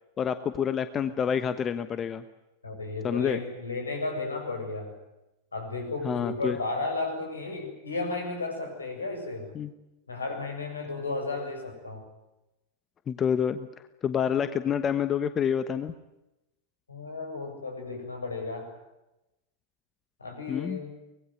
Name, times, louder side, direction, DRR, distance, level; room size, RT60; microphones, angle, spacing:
voice 1, 0.2-2.2 3.0-3.4 6.0-6.6 9.5-9.7 13.1-13.7 14.0-15.9 20.5-20.8, left 8 dB, 25° left, 12 dB, 1.2 m, -28 dB
voice 2, 2.6-4.9 5.5-9.5 10.1-12.1 16.9-18.7 20.2-20.9, left 3 dB, 75° left, 4 dB, 7.6 m, -34 dB
24.5 x 20.5 x 9.4 m, 0.94 s
figure-of-eight pair, 90°, 0 cm